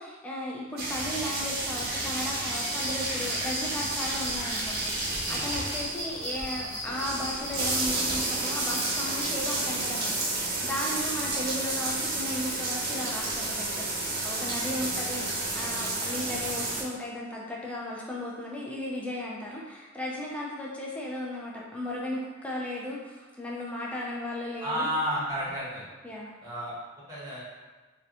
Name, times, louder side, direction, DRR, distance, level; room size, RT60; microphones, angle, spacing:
voice 1, 0.0-24.9 26.0-26.3, left 1 dB, 5° left, -4 dB, 0.3 m, -35 dB
sound 1, 0.8-16.8, right 2 dB, 55° right, 0.5 m, -31 dB
sound 2, 2.4-9.2, equal, 65° left, 1.0 m, -37 dB
voice 2, 5.3-5.7 24.6-25.8 26.4-26.7 27.1-27.4, equal, 20° right, -8 dB, 0.8 m, -32 dB
2.7 x 2.1 x 2.3 m, 1.3 s
head